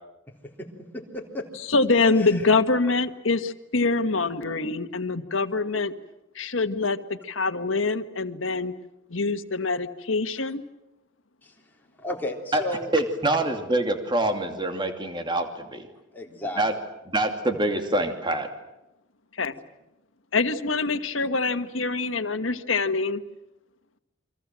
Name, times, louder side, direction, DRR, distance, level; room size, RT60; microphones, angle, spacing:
voice 1, 0.9-1.4 2.1-2.5 11.4-11.5 12.0-12.9 16.1-16.6, left 1 dB, 10° left, -1 dB, 3.7 m, -33 dB
voice 2, 1.7-5.9 6.3-8.7 9.1-10.6 19.4-19.5 20.3-23.2, left 3 dB, 85° left, 9 dB, 1.6 m, -25 dB
voice 3, 12.9-15.9 16.6-16.7 17.1-18.5, right 1 dB, 25° right, 5 dB, 2.6 m, -25 dB
29.5 x 25.0 x 7.6 m, 0.91 s
head